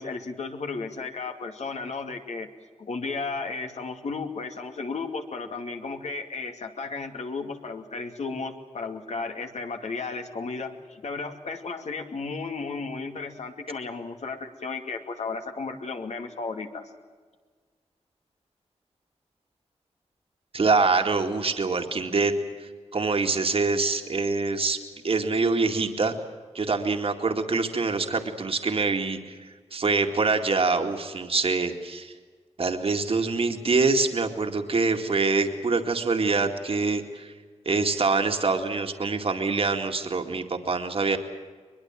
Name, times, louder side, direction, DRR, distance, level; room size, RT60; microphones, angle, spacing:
voice 1, 0.0-2.5 2.8-16.8, left 4 dB, 75° left, 4 dB, 2.5 m, -34 dB
voice 2, 20.5-22.3 22.6-24.8 25.0-26.1 26.5-32.1 32.6-37.3 37.7-41.2, right 4 dB, 55° right, 4 dB, 2.2 m, -25 dB
22.5 x 22.5 x 7.6 m, 1.5 s
wide cardioid pair, 85°, 12 cm